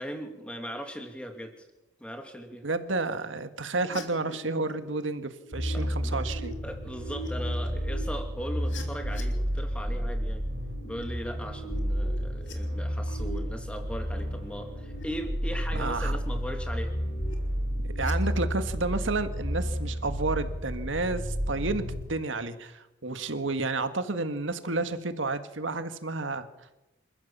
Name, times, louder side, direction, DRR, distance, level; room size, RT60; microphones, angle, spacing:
voice 1, 0.0-1.6 2.0-2.6 5.7-6.2 6.6-10.4 10.8-16.9, equal, 5° left, 5 dB, 2.7 m, -38 dB
voice 2, 2.6-6.5 15.7-16.1 18.0-26.5, right 3 dB, 90° right, 9 dB, 1.8 m, -31 dB
sound 1, 3.9-9.6 10.4-12.5 12.8-13.4 13.8-14.2 14.5-15.0 15.4-15.9 16.8-18.1 18.5-19.0, right 1 dB, 75° left, 3.6 m, -46 dB
sound 2, 5.5-22.0, equal, 55° right, 6.1 m, -31 dB
27.5 x 14.5 x 7.4 m, 0.99 s
head